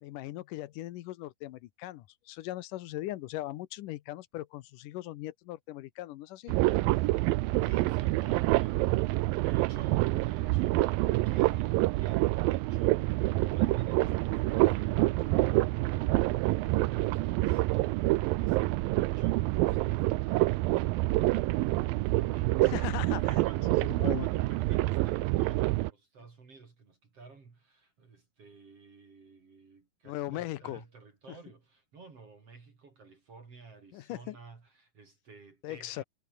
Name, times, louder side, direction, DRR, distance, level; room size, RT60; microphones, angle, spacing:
voice 1, 0.0-6.6 22.6-23.4 23.9-24.3 30.0-30.8 33.9-34.4 35.6-36.0, left 15 dB, 75° left, 2.3 m, -39 dB
sound 1, 6.5-25.9, right 19 dB, 90° right, 2.5 m, -27 dB
voice 2, 7.6-22.6 23.0-36.0, right 4 dB, 45° right, 4.4 m, -53 dB
omnidirectional pair, 4.0 m